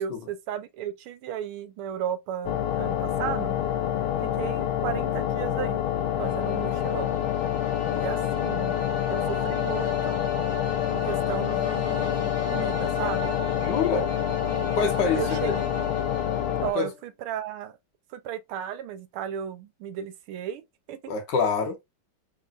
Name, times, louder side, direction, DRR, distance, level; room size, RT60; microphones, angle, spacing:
voice 1, 0.0-3.6 4.2-5.8 6.2-7.2 7.9-8.8 9.1-10.2 10.9-13.4 14.5-14.8 15.1-15.7 16.6-17.8 18.1-20.6 20.9-21.1, right 10 dB, 90° right, 1.6 m, -35 dB
sound 1, 2.4-16.7, left 10 dB, 85° left, 1.5 m, -27 dB
sound 2, 6.0-17.0, left 5 dB, 30° left, 1.4 m, -35 dB
voice 2, 13.6-14.1 14.7-15.5 16.8-16.9 21.1-21.8, left 5 dB, 60° left, 1.4 m, -26 dB
4.0 x 3.7 x 2.5 m
omnidirectional pair, 2.4 m